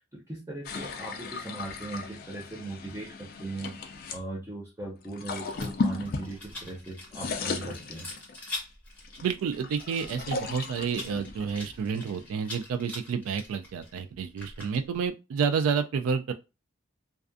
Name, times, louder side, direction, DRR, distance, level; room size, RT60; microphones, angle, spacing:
voice 1, 0.0-3.7 4.1-8.1, right 2 dB, 15° right, 0.5 m, -39 dB
sound 1, 0.7-4.2 5.0-6.8 7.0-8.5 9.0-12.5, left 4 dB, 45° left, 0.3 m, -36 dB
Rattle, 5.5-15.1, left 2 dB, 10° left, 0.9 m, -44 dB
voice 2, 9.2-16.3, right 6 dB, 85° right, 0.3 m, -29 dB
2.4 x 2.3 x 2.4 m
head